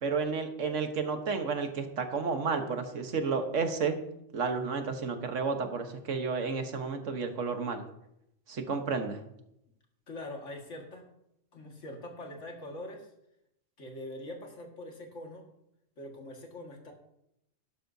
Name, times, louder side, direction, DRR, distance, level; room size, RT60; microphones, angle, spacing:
voice 1, 0.0-4.0 4.3-7.8 8.5-9.2, right 5 dB, 80° right, 6 dB, 1.5 m, -31 dB
voice 2, 10.1-11.0 11.5-13.1 13.8-15.5 16.0-16.9, left 1 dB, 85° left, 1 dB, 2.2 m, -43 dB
12.5 x 11.0 x 2.7 m, 0.81 s
omnidirectional pair, 1.2 m